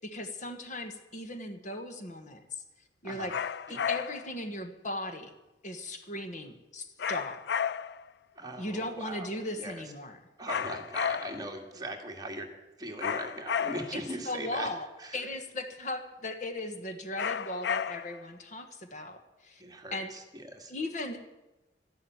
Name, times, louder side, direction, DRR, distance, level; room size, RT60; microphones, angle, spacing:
voice 1, 0.0-2.4 3.0-3.3 3.7-5.3 5.6-7.4 8.6-10.2 13.9-14.9 15.1-19.6 19.9-20.1 20.7-21.2, left 1 dB, 45° left, 7 dB, 1.4 m, -37 dB
sound 1, 3.3-4.3 7.0-8.1 10.5-11.5 13.0-14.1 17.2-18.2, left 7 dB, 70° left, 0.4 m, -33 dB
voice 2, 8.4-9.3 9.6-9.8 10.4-12.5 12.8-14.7 15.0-15.2 19.6-20.7, right 1 dB, 20° right, 2 dB, 2.0 m, -39 dB
13.0 x 11.5 x 9.2 m, 1.1 s
head